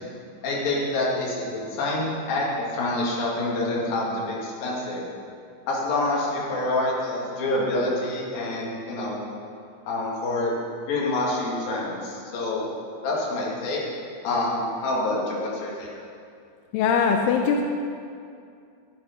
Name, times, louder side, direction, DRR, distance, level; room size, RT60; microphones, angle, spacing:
voice 1, 0.4-5.0 5.7-9.2 9.9-10.6 10.9-12.7 13.0-13.8 14.2-15.9, left 2 dB, 55° left, -5 dB, 3.6 m, -27 dB
voice 2, 16.7-17.6, left 6 dB, 85° left, 2 dB, 3.2 m, -21 dB
12.0 x 11.0 x 5.2 m, 2.4 s
omnidirectional pair, 5.7 m